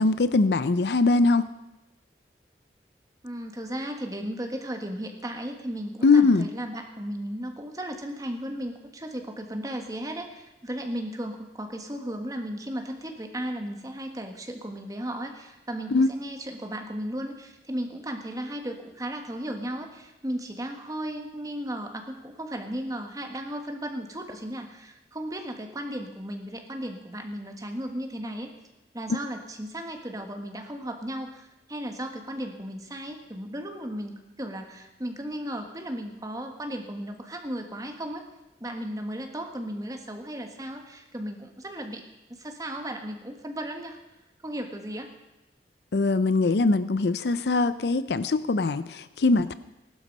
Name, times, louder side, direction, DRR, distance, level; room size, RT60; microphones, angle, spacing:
voice 1, 0.0-1.5 6.0-6.5 15.9-16.1 45.9-49.5, left 3 dB, 65° left, 14 dB, 0.5 m, -22 dB
voice 2, 3.2-28.5 28.9-38.2 38.6-42.0 42.3-44.0 44.4-45.1, right 1 dB, 20° right, 4 dB, 1.5 m, -35 dB
17.5 x 12.0 x 5.4 m, 0.96 s
head